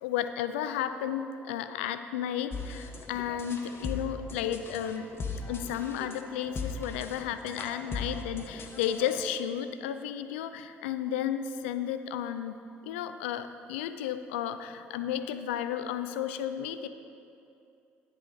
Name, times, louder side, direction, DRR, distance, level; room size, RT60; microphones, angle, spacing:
voice 1, 0.0-5.1 5.5-12.6 12.8-16.9, left 9 dB, 75° left, 10 dB, 0.4 m, -33 dB
sound 1, 2.5-9.2, left 4 dB, 35° left, 1.0 m, -39 dB
9.7 x 8.3 x 3.7 m, 2.6 s
figure-of-eight pair, 55°, 7 cm